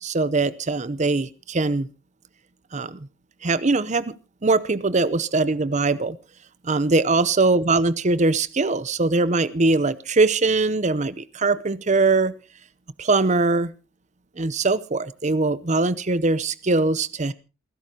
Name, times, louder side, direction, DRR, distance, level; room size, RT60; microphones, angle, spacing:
voice 1, 0.0-1.9 2.7-3.1 3.4-4.1 4.4-6.2 6.6-12.4 13.0-13.7 14.4-17.3, right 3 dB, 35° right, 17 dB, 0.7 m, -21 dB
28.0 x 11.0 x 2.9 m, 0.30 s
head